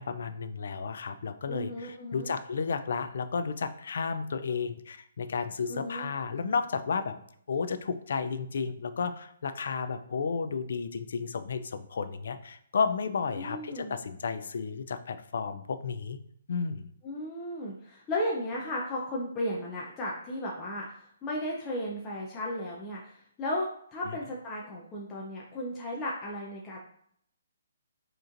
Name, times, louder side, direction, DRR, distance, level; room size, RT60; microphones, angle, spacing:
voice 1, 0.0-7.2 7.5-16.2 16.5-16.9 24.1-24.2, left 5 dB, 65° left, 10 dB, 0.4 m, -32 dB
voice 2, 1.5-2.3 5.7-6.1 13.3-13.9 17.0-26.8, left 1 dB, 20° left, -4 dB, 0.6 m, -35 dB
4.9 x 3.0 x 2.5 m, 0.67 s
hypercardioid pair, 150°, 0 cm